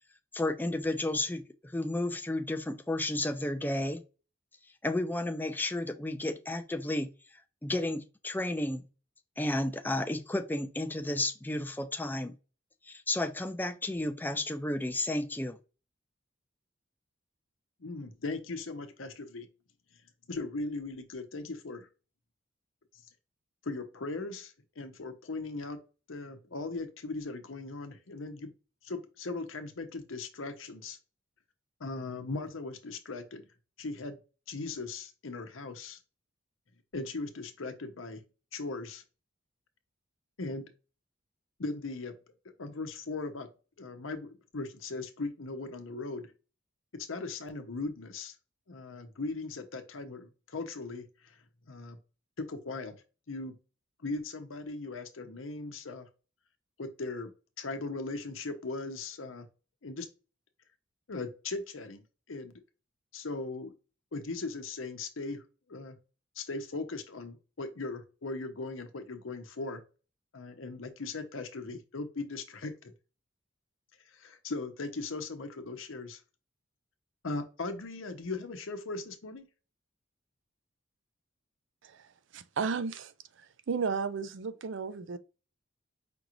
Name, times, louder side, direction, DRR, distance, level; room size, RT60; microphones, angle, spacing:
voice 1, 0.3-1.4 1.7-4.0 4.8-7.1 7.6-8.9 9.4-12.4 12.9-15.6, left 1 dB, 10° left, 0.4 m, -32 dB
voice 2, 17.8-19.5 20.3-21.9 23.6-25.8 26.1-28.5 28.8-31.0 31.8-33.4 33.8-34.2 34.5-36.0 36.9-38.2 38.5-39.0 40.4-40.7 41.6-42.2 42.6-43.5 43.8-46.3 46.9-48.3 48.7-51.4 51.7-52.0 52.4-53.0 53.3-53.6 54.0-56.1 56.8-57.3 57.6-59.5 59.8-60.1 61.1-62.0 62.3-62.6 63.1-63.7 64.1-66.0 66.4-69.8 70.3-72.9 74.1-76.2 77.2-79.5, left 3 dB, 85° left, 0.8 m, -38 dB
voice 3, 82.3-83.1 83.4-85.2, right 5 dB, 65° right, 0.4 m, -34 dB
5.2 x 2.5 x 3.0 m
head